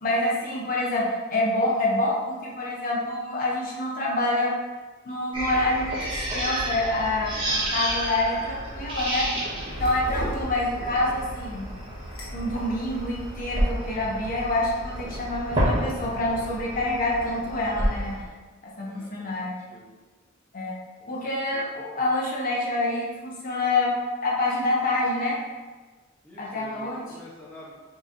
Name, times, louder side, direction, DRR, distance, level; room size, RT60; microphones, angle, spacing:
voice 1, 0.0-4.5 5.0-9.3 9.8-11.7 12.3-18.2 18.6-19.5 20.5-20.7 21.1-23.9 24.2-25.4 26.4-27.0, left 2 dB, 40° left, -4 dB, 0.9 m, -27 dB
sound 1, 5.3-18.2, right 1 dB, 25° right, 1.1 m, -30 dB
voice 2, 7.2-7.8 18.8-19.9 21.0-21.7 26.2-27.7, left 1 dB, 10° left, -8 dB, 0.8 m, -48 dB
sound 2, 9.7-13.7, equal, 90° left, 1.1 m, -38 dB
6.4 x 3.0 x 2.6 m, 1.3 s
head